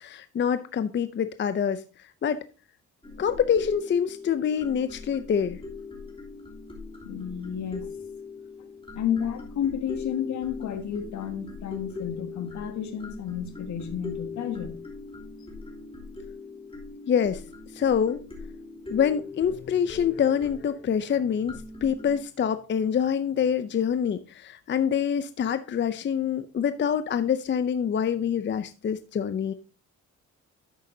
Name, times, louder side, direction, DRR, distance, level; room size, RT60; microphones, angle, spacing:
voice 1, 0.0-1.8 2.2-2.4 3.2-5.6 17.1-17.4 17.7-18.2 18.9-29.5, left 8 dB, 40° left, 0.6 m, -26 dB
sound 1, 3.0-22.2, left 4 dB, 20° left, 3.2 m, -41 dB
voice 2, 7.0-7.9 8.9-14.8, left 9 dB, 70° left, 1.6 m, -31 dB
11.0 x 7.8 x 2.7 m
cardioid pair, 90°, 30 cm